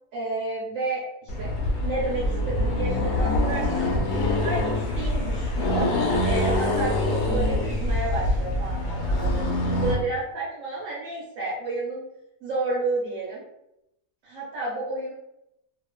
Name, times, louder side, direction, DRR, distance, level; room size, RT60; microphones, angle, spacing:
voice 1, 0.1-1.5 1.8-3.9 4.3-5.9 6.2-12.0 12.4-13.4 14.2-15.1, right 2 dB, 60° right, -7 dB, 1.2 m, -31 dB
Accelerating revving vroom, 1.3-10.0, left 1 dB, 65° left, 1.0 m, -25 dB
2.8 x 2.4 x 2.2 m, 0.84 s
omnidirectional pair, 1.7 m